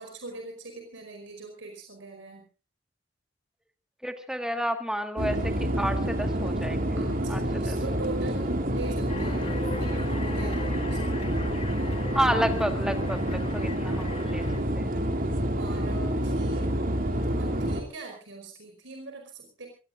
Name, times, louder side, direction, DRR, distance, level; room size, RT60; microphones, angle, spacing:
voice 1, 0.0-2.4 7.0-11.9 15.6-19.7, right 2 dB, 75° right, 2 dB, 4.9 m, -42 dB
voice 2, 4.0-6.9 7.3-7.8 12.2-14.4 14.8-14.9, equal, 5° right, 6 dB, 1.8 m, -30 dB
sound 1, 5.2-17.8, right 1 dB, 45° right, 2.5 m, -28 dB
sound 2, 9.1-14.6, left 4 dB, 30° left, 1.9 m, -41 dB
26.5 x 18.0 x 2.6 m, 0.34 s
head